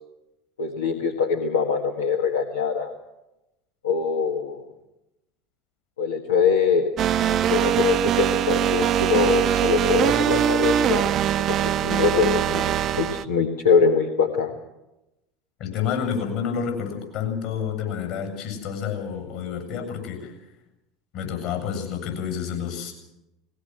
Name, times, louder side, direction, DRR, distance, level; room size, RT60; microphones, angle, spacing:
voice 1, 0.6-2.9 3.8-4.6 6.0-6.9 7.5-11.1 11.4-14.6, left 5 dB, 80° left, 2 dB, 1.7 m, -23 dB
sound 1, 7.0-13.2, right 10 dB, 45° right, 0.8 m, -22 dB
voice 2, 15.6-20.4 21.1-22.9, left 7 dB, 60° left, 4 dB, 7.8 m, -29 dB
20.0 x 18.5 x 7.9 m, 0.94 s
hypercardioid pair, 75°, 0 cm